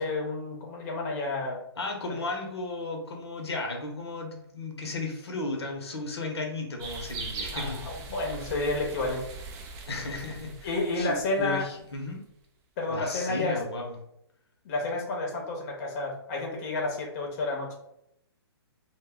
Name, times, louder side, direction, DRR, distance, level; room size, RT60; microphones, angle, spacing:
voice 1, 0.0-1.6 7.5-9.2 10.6-11.7 12.8-13.6 14.6-17.8, left 2 dB, 35° left, 0 dB, 0.7 m, -30 dB
voice 2, 1.8-7.8 9.9-12.2 12.9-14.0, left 2 dB, 75° left, 2 dB, 0.7 m, -34 dB
sound 1, 6.8-11.8, right 4 dB, 20° right, 0.3 m, -40 dB
2.1 x 2.0 x 3.4 m, 0.78 s
hypercardioid pair, 135°, 14 cm